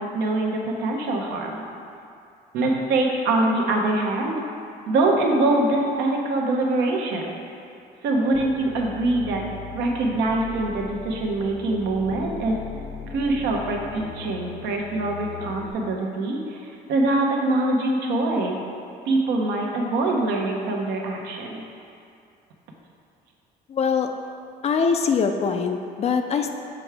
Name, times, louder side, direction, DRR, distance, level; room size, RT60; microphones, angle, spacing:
voice 1, 0.0-1.6 2.5-4.4 4.9-7.4 8.0-9.4 9.7-12.6 13.1-18.6 19.1-21.6, right 2 dB, 80° right, 0 dB, 0.8 m, -24 dB
sound 1, 8.3-15.7, left 5 dB, 65° left, 0.8 m, -39 dB
voice 2, 23.7-24.1 24.6-26.5, left 5 dB, 40° left, 5 dB, 0.4 m, -23 dB
6.0 x 4.7 x 3.4 m, 2.5 s
cardioid pair, 110°, 17 cm